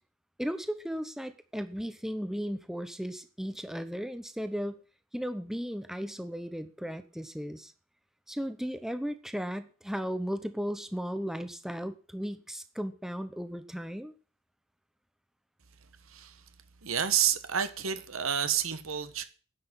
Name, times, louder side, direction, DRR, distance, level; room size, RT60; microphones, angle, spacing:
voice 1, 0.4-4.8 5.1-7.7 8.3-14.1, equal, ahead, 0.8 m, -35 dB
voice 2, 16.1-16.4 16.8-19.2, right 9 dB, 80° right, 1.3 m, -29 dB
9.8 x 6.3 x 8.8 m
head